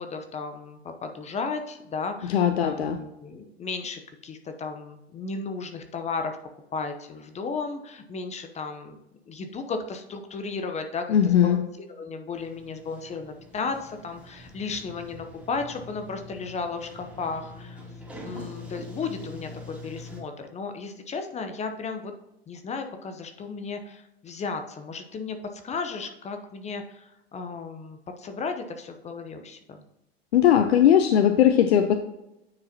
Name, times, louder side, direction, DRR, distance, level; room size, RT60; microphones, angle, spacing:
voice 1, 0.0-6.4 6.7-9.0 9.3-11.6 11.9-17.8 18.2-22.1 22.5-29.8, left 4 dB, 20° left, 7 dB, 0.7 m, -34 dB
voice 2, 2.3-3.0 11.1-11.6 30.3-31.9, left 9 dB, 75° left, 8 dB, 0.6 m, -19 dB
Sliding door, 12.3-20.2, left 1 dB, 5° right, 2.2 m, -44 dB
9.5 x 4.8 x 2.8 m, 0.90 s
hypercardioid pair, 95°, 32 cm